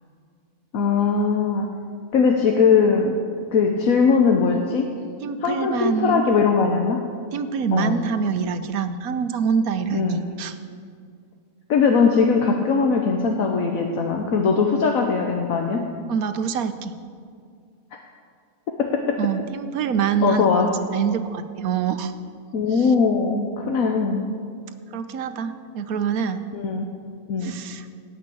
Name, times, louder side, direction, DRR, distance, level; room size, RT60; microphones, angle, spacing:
voice 1, 0.7-1.7 2.1-3.1 3.5-4.9 5.4-7.0 7.7-8.0 9.9-10.2 11.7-15.8 18.8-19.2 20.2-20.7 22.5-24.3 26.5-26.9 27.3-27.5, left 5 dB, 75° left, 2 dB, 1.4 m, -20 dB
voice 2, 5.2-6.3 7.3-10.6 16.1-16.9 19.2-22.1 22.7-22.9 24.9-26.5 27.4-27.9, right 7 dB, 85° right, 10 dB, 1.2 m, -25 dB
17.0 x 5.8 x 8.5 m, 2.2 s
omnidirectional pair, 1.5 m